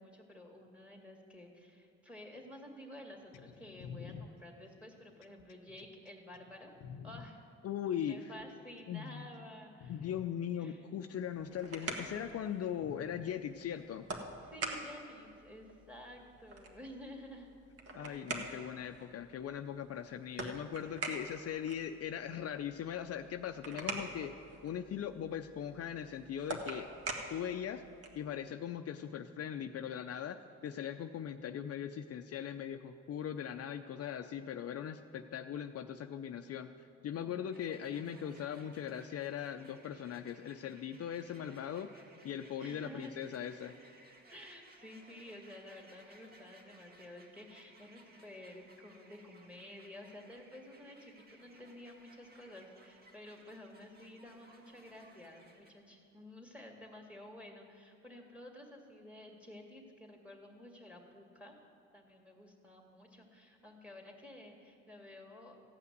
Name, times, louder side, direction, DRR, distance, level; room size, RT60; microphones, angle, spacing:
voice 1, 0.0-6.7 7.0-7.4 8.1-10.0 10.6-10.8 14.4-17.5 18.5-18.7 37.2-38.3 42.6-43.1 44.3-61.5 61.9-65.6, left 1 dB, 5° right, 2 dB, 2.2 m, -52 dB
sound 1, 3.3-7.3 8.2-8.9 9.3-9.5 9.8-10.3 11.4-11.5 12.8-13.3 14.4-14.5, left 6 dB, 90° left, 0.7 m, -50 dB
voice 2, 7.6-8.3 8.9-9.3 9.9-14.1 17.9-24.4 24.6-26.9 27.3-27.8 28.2-36.7 37.0-41.9 42.2-43.7, left 9 dB, 55° left, 7 dB, 0.5 m, -40 dB
sound 2, 11.2-28.3, right 3 dB, 50° right, 1.6 m, -45 dB
sound 3, 37.5-55.7, right 2 dB, 30° right, 1.5 m, -61 dB
15.0 x 5.8 x 9.4 m, 2.5 s
cardioid pair, 90°, 30 cm